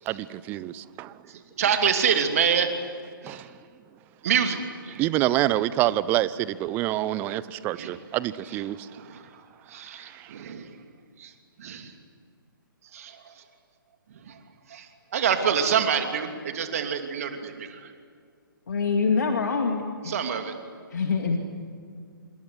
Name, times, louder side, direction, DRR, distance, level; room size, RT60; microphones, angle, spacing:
voice 1, 0.1-1.2 3.2-3.5 5.0-8.9 10.0-10.4, right 14 dB, 15° right, 18 dB, 0.6 m, -27 dB
voice 2, 1.2-2.7 3.2-3.5 4.2-5.0 7.8-7.9 8.4-10.8 11.2-11.9 12.8-13.4 14.1-14.4 14.7-17.9 20.0-20.5, right 7 dB, 40° right, 6 dB, 2.9 m, -27 dB
voice 3, 18.7-20.1 20.9-21.4, left 5 dB, 55° left, 4 dB, 2.4 m, -25 dB
27.0 x 27.0 x 8.1 m, 2.2 s
figure-of-eight pair, 130°, 12 cm